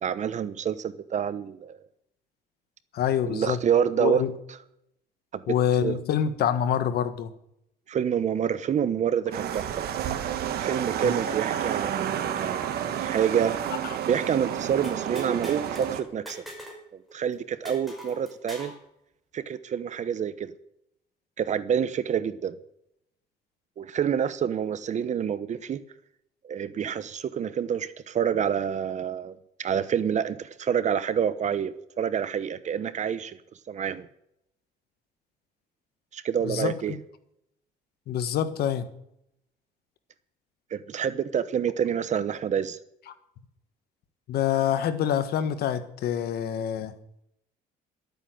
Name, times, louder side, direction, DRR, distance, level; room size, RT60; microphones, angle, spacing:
voice 1, 0.0-1.8 3.2-4.2 5.3-5.4 5.8-6.0 7.9-9.8 10.6-13.5 14.1-16.4 16.9-18.7 19.3-20.5 21.4-22.6 23.8-25.8 26.4-33.4 33.7-34.1 36.1-36.9 40.7-42.8, right 8 dB, 45° right, 14 dB, 1.0 m, -27 dB
voice 2, 2.9-3.6 4.0-4.3 5.5-7.3 11.0-11.2 13.9-14.0 36.4-36.7 38.1-38.9 44.3-46.9, left 9 dB, 70° left, 11 dB, 1.5 m, -26 dB
sound 1, 9.3-16.0, right 9 dB, 65° right, 1.5 m, -30 dB
sound 2, 14.8-15.9 16.3-16.8 17.1-17.2 17.6-18.8, equal, ahead, 5.7 m, -42 dB
12.5 x 8.9 x 7.8 m, 0.76 s
cardioid pair, 110°, 17 cm